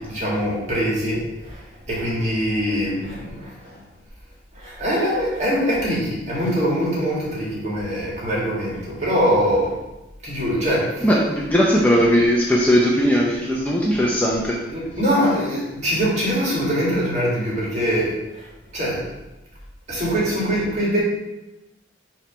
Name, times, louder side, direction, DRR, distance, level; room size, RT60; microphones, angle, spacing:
voice 1, 0.0-3.8 4.5-9.7 10.2-11.3 14.7-19.0 19.9-21.0, equal, 35° right, -5 dB, 1.9 m, -23 dB
voice 2, 11.0-14.6, equal, 10° left, -4 dB, 0.6 m, -18 dB
5.8 x 3.4 x 5.1 m, 1.0 s
head